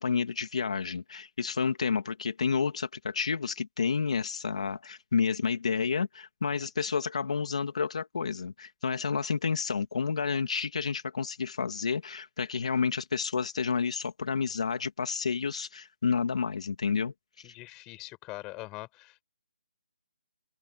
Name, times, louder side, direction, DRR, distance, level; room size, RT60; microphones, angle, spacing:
voice 1, 0.0-17.1 17.4-17.5, left 5 dB, 45° left, 2.7 m, -30 dB
voice 2, 17.4-19.2, left 21 dB, 10° left, 5.9 m, -43 dB
open air
hypercardioid pair, 180°, 5 cm